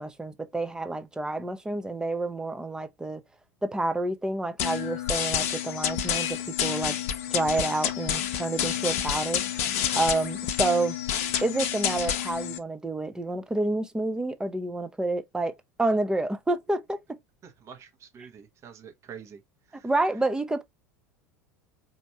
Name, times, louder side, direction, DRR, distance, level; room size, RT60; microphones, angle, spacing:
voice 1, 0.0-3.2 3.6-7.0 7.3-9.4 10.0-11.0 11.4-17.2 19.8-20.6, right 2 dB, 10° right, 0.7 m, -29 dB
sound 1, 4.6-12.6, left 10 dB, 60° left, 0.7 m, -29 dB
voice 2, 17.4-19.4 19.7-19.9, right 7 dB, 35° right, 1.1 m, -46 dB
4.3 x 2.9 x 2.9 m
figure-of-eight pair, 80°, 8 cm